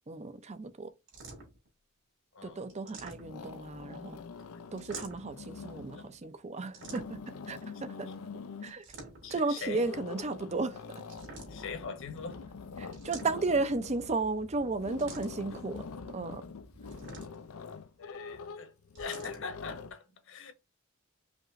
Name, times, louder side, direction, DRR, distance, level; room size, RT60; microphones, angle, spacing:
voice 1, 0.1-0.9 2.4-4.2 4.7-8.1 8.6-8.9 9.3-11.0 12.8-16.4, right 3 dB, 30° right, 0.5 m, -34 dB
sound 1, 1.1-1.7 2.7-3.6 4.8-5.4 6.7-7.4 8.7-9.4 11.0-11.8 12.9-13.7 15.0-15.5 16.9-17.6 18.9-19.4, right 3 dB, 55° right, 2.4 m, -47 dB
voice 2, 2.3-2.9 4.3-4.6 5.9-6.0 9.2-9.9 11.5-12.4 13.6-13.7 18.0-18.7 19.0-20.5, left 5 dB, 65° left, 1.2 m, -42 dB
sound 2, 2.4-2.9 3.2-6.2 6.7-8.8 9.6-19.9, left 5 dB, 85° left, 0.5 m, -45 dB
sound 3, 11.1-17.3, equal, 80° right, 2.4 m, -55 dB
5.2 x 3.0 x 2.5 m
head